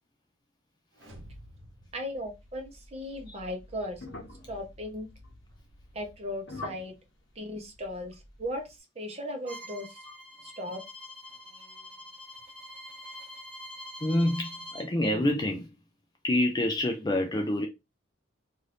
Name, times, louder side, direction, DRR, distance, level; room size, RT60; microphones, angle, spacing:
sound 1, 0.9-3.1, equal, 65° right, 1.0 m, -51 dB
voice 1, 1.9-4.0 4.5-5.1 5.9-6.9 7.4-8.6 9.0-10.0 10.4-10.8, left 1 dB, 30° right, 0.8 m, -37 dB
sound 2, 2.2-8.7, left 1 dB, 75° left, 1.0 m, -48 dB
Bowed string instrument, 9.5-14.9, equal, 10° right, 1.4 m, -45 dB
voice 2, 14.0-15.8 16.2-17.7, left 1 dB, 20° left, 0.4 m, -27 dB
2.6 x 2.5 x 3.3 m
head